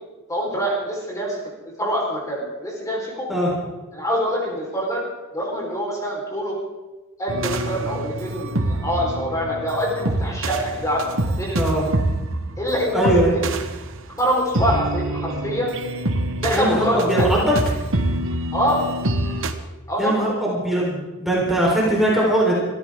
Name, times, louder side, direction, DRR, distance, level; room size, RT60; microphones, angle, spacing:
voice 1, 0.3-1.4 1.8-3.3 3.9-5.0 5.3-6.6 7.2-11.6 12.6-13.4 14.2-15.7 16.4-17.5 18.5-18.8 19.9-20.3 21.8-22.0, equal, 15° left, -3 dB, 4.4 m, -25 dB
sound 1, 7.3-19.5, right 1 dB, 60° right, 1.3 m, -26 dB
voice 2, 11.5-11.8 12.9-13.3 16.5-17.5 20.0-22.5, right 1 dB, ahead, -5 dB, 4.1 m, -20 dB
26.5 x 14.5 x 3.8 m, 1.1 s
head